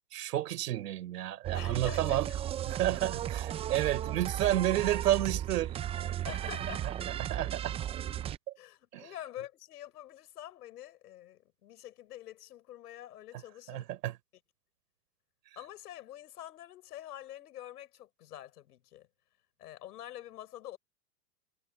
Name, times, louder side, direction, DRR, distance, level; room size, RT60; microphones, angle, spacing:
voice 1, 0.0-2.3 2.7-5.7 6.0-6.1 6.8-6.9 7.2-7.7 8.9-9.1 13.7-14.2, right 13 dB, 80° right, 4.6 m, -31 dB
sound 1, 1.4-8.4, right 11 dB, 15° right, 0.4 m, -35 dB
voice 2, 1.5-2.2 6.2-6.8 8.6-13.9 15.6-19.1 19.6-20.8, left 13 dB, 80° left, 6.5 m, -46 dB
hypercardioid pair, 120°, 46 cm